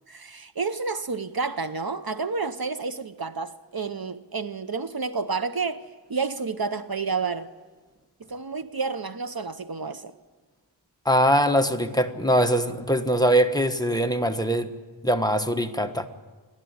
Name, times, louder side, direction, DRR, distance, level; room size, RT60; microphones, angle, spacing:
voice 1, 0.1-7.5 8.3-10.1, right 4 dB, 55° right, 0.8 m, -30 dB
voice 2, 11.0-14.7 15.0-16.1, equal, 10° left, 1.3 m, -22 dB
28.5 x 11.5 x 9.7 m
wide cardioid pair, 60°, 44 cm